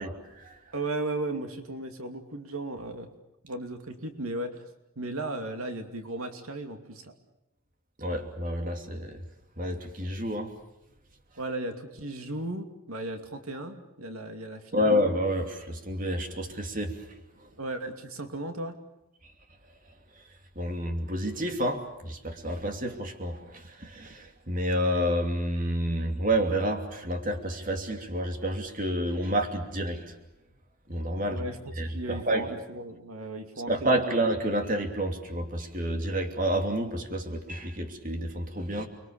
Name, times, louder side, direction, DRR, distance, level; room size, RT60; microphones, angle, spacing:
voice 1, 0.0-0.7 8.0-9.2 9.6-10.5 14.7-17.5 19.2-19.3 20.1-30.2 30.9-31.4 31.7-32.5 33.7-38.9, equal, 40° right, 5 dB, 2.9 m, -29 dB
voice 2, 0.7-3.1 3.4-4.7 5.0-7.1 11.4-14.9 17.6-18.8 31.3-34.2, right 2 dB, 85° right, 6 dB, 2.6 m, -36 dB
30.0 x 23.0 x 7.0 m, 0.91 s
head